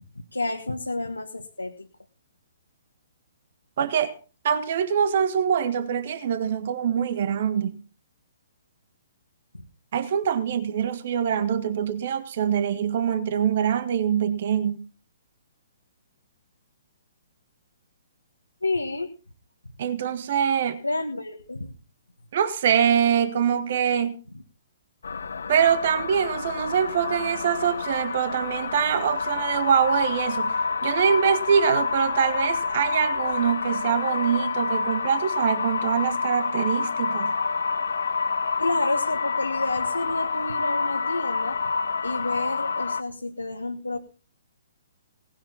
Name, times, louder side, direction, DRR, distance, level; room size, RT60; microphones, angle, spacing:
voice 1, 0.3-1.9 18.6-19.1 20.8-21.7 38.6-41.6 42.0-44.0, left 2 dB, 85° left, 1.6 m, -29 dB
voice 2, 3.8-4.1 4.4-7.8 9.9-14.7 19.8-20.8 22.3-24.1 25.5-30.5 30.8-37.3, right 8 dB, 50° right, 1.6 m, -24 dB
sound 1, 25.0-43.0, left 4 dB, 65° left, 0.9 m, -28 dB
18.5 x 12.0 x 4.1 m
figure-of-eight pair, 125°, 0 cm